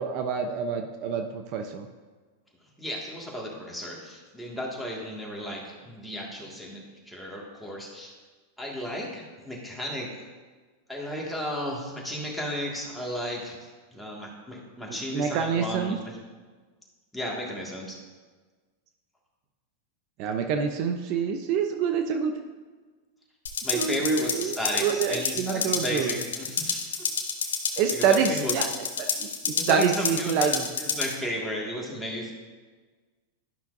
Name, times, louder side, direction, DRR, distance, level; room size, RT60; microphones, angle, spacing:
voice 1, 0.0-1.9 15.1-16.0 20.2-22.3 23.7-24.5 24.8-26.2 27.8-28.7 29.2-30.6, right 6 dB, 50° right, 5 dB, 0.6 m, -26 dB
voice 2, 2.8-8.1 8.6-10.2 10.9-16.2 17.1-18.0 23.6-27.1 27.7-28.6 29.6-30.5 30.8-32.3, equal, 5° left, -3 dB, 1.9 m, -34 dB
sound 1, 23.5-31.1, left 5 dB, 80° left, 1.0 m, -30 dB
12.0 x 5.7 x 2.6 m, 1.4 s
hypercardioid pair, 105°, 0 cm